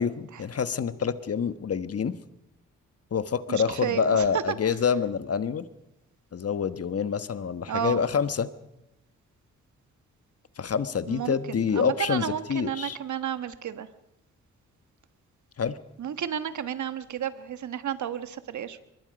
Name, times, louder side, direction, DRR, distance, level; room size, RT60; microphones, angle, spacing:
voice 1, 0.0-2.2 3.1-5.7 6.3-8.5 10.6-13.0 15.6-15.8, left 6 dB, 50° left, 13 dB, 1.3 m, -27 dB
voice 2, 3.5-4.6 7.7-8.0 11.1-13.9 16.0-18.8, right 9 dB, 65° right, 12 dB, 1.3 m, -32 dB
23.5 x 21.0 x 5.3 m, 0.87 s
cardioid pair, 65°, 31 cm